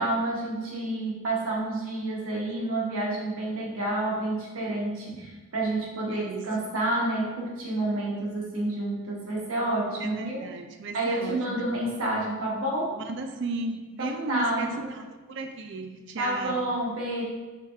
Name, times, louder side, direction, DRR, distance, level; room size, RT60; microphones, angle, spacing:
voice 1, 0.0-10.4 10.9-13.0 14.0-15.0 16.2-17.2, right 1 dB, 85° right, -3 dB, 1.2 m, -29 dB
voice 2, 6.1-6.5 10.0-11.7 13.0-16.7, right 3 dB, 55° right, 6 dB, 0.4 m, -35 dB
5.0 x 3.2 x 3.3 m, 1.3 s
head